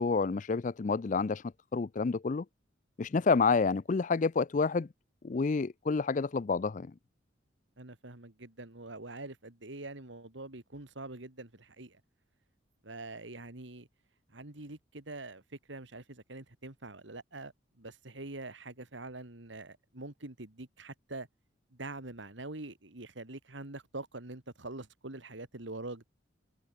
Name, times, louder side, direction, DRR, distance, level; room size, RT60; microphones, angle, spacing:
voice 1, 0.0-1.4 1.7-2.4 3.0-4.9 5.2-6.9, left 4 dB, 40° left, 0.4 m, -29 dB
voice 2, 7.8-12.0 12.8-13.9 14.3-21.3 21.7-26.1, right 2 dB, 70° right, 2.3 m, -44 dB
head